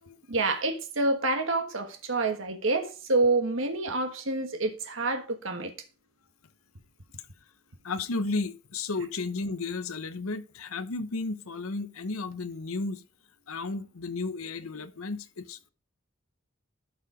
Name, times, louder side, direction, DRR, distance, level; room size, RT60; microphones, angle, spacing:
voice 1, 0.3-5.7, right 2 dB, 70° right, 1.3 m, -27 dB
voice 2, 7.8-13.0 13.5-15.7, left 3 dB, 90° left, 0.8 m, -33 dB
12.0 x 4.9 x 4.9 m
head